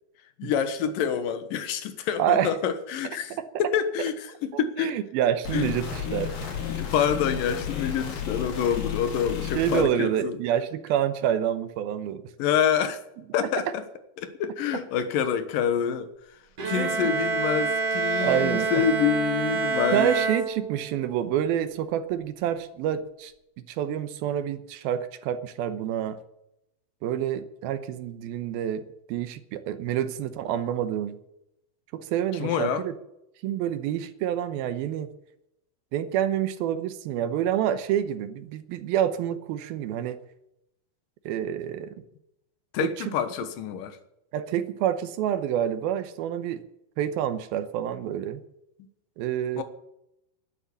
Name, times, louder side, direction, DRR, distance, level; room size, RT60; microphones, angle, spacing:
voice 1, 0.4-5.0 5.5-5.7 6.7-10.4 12.4-13.0 13.3-13.8 14.2-16.1 16.7-20.1 32.3-32.8 42.7-44.0 49.6-49.7, left 8 dB, 65° left, 2.8 m, -27 dB
voice 2, 2.2-2.5 3.0-3.5 4.5-6.3 9.5-12.3 16.8-17.1 18.2-18.8 19.9-23.3 23.7-26.2 27.0-28.8 29.1-31.2 31.9-32.9 33.4-35.1 35.9-40.2 41.3-41.9 42.8-43.1 44.3-46.6 47.0-48.4 49.2-49.6, right 10 dB, 80° right, 2.7 m, -28 dB
sound 1, 5.5-9.9, left 8 dB, 85° left, 4.8 m, -32 dB
Bowed string instrument, 16.6-21.0, right 4 dB, 40° right, 3.7 m, -27 dB
12.0 x 10.0 x 9.8 m
omnidirectional pair, 4.4 m